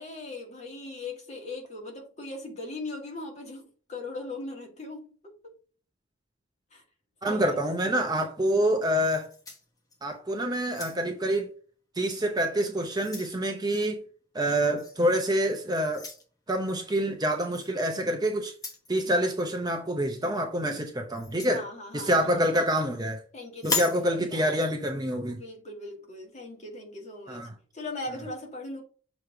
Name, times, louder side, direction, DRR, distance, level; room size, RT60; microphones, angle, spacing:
voice 1, 0.0-5.1 5.4-5.5 6.7-6.8 7.2-7.6 21.5-22.1 23.3-24.5 25.3-28.8, left 2 dB, 35° left, 1.9 m, -39 dB
voice 2, 7.2-9.3 10.0-11.5 12.0-14.0 14.3-16.1 16.5-18.5 18.9-21.6 21.9-23.2 23.6-25.4 27.3-27.5, equal, 20° right, 0.7 m, -27 dB
sound 1, 9.0-10.2 10.6-11.3 12.1-12.3 12.7-13.4 14.8-15.0 15.9-16.2 17.5-17.7 18.5-18.9 21.1-21.6 23.6-24.0, left 4 dB, 15° left, 1.1 m, -35 dB
6.8 x 3.0 x 4.7 m
head